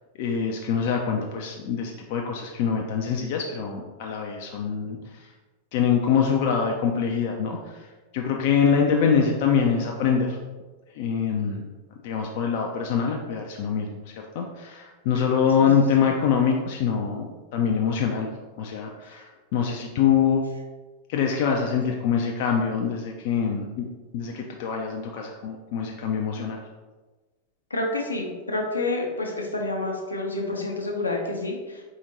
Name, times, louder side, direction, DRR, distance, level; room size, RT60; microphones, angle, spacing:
voice 1, 0.2-5.3 5.7-7.9 8.1-10.4 10.9-11.6 12.0-18.3 18.6-20.4 21.1-23.9 24.1-26.6, left 7 dB, 50° left, 1 dB, 0.4 m, -24 dB
voice 2, 27.7-31.8, left 2 dB, 80° left, 0 dB, 0.8 m, -28 dB
4.2 x 3.6 x 2.9 m, 1.3 s
figure-of-eight pair, 90°, 0 cm